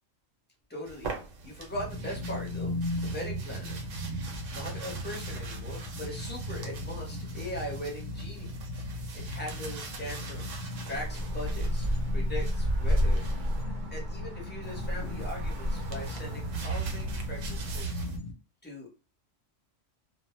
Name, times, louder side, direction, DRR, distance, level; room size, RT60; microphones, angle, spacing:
voice 1, 0.7-1.1 1.4-3.8 4.5-8.5 9.1-13.2 13.9-18.1 18.6-18.9, left 1 dB, 10° left, -2 dB, 0.6 m, -40 dB
sound 1, 0.8-13.6 14.6-18.2, right 4 dB, 75° right, 0.9 m, -42 dB
sound 2, 1.7-18.3, left 1 dB, 65° left, 0.8 m, -37 dB
Traffic noise roadway noise, 10.9-17.8, equal, 50° right, 0.6 m, -31 dB
2.2 x 2.0 x 3.0 m, 0.32 s
omnidirectional pair, 1.3 m